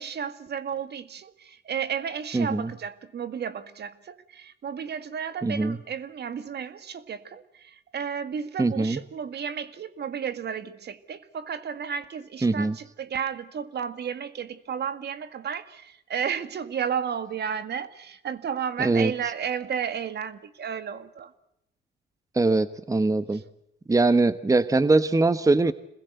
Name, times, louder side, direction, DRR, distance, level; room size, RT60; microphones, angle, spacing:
voice 1, 0.0-21.3 23.3-23.4, right 7 dB, 55° right, 1.9 m, -33 dB
voice 2, 2.3-2.7 5.4-5.8 8.6-9.0 12.4-12.8 18.8-19.1 22.3-23.4 23.9-25.7, right 3 dB, 15° right, 1.1 m, -22 dB
27.0 x 21.0 x 8.0 m
cardioid pair, 90°, 20 cm